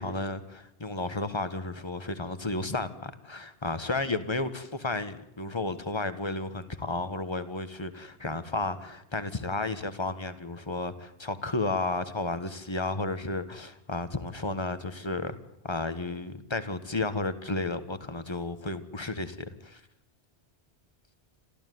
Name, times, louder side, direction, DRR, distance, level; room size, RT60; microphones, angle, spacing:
voice 1, 0.0-15.4 15.6-19.8, left 2 dB, 25° left, 1.5 m, -32 dB
27.5 x 14.5 x 9.5 m
omnidirectional pair, 1.1 m